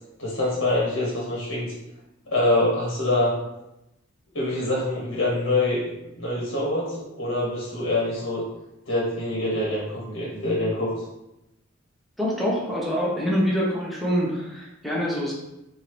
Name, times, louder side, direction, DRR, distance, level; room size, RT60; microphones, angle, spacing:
voice 1, 0.2-1.7 2.3-3.3 4.3-8.5 8.9-10.9, left 2 dB, 90° left, -5 dB, 1.2 m, -25 dB
voice 2, 12.2-15.3, equal, ahead, -5 dB, 0.8 m, -25 dB
4.7 x 2.7 x 3.0 m, 0.91 s
head